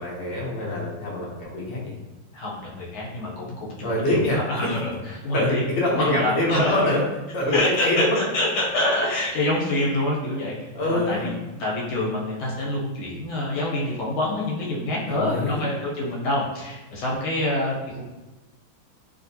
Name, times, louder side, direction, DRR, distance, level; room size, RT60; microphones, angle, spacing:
voice 1, 0.0-1.9 3.8-4.8 5.3-7.0 7.3-8.3 10.7-11.3 15.1-15.7, left 1 dB, 50° left, -5 dB, 1.0 m, -25 dB
voice 2, 2.3-4.9 5.2-5.6 6.0-6.7 7.5-10.5 10.9-11.3 11.6-18.0, left 1 dB, 85° left, -4 dB, 1.7 m, -26 dB
3.3 x 2.9 x 2.7 m, 1.1 s
omnidirectional pair, 2.3 m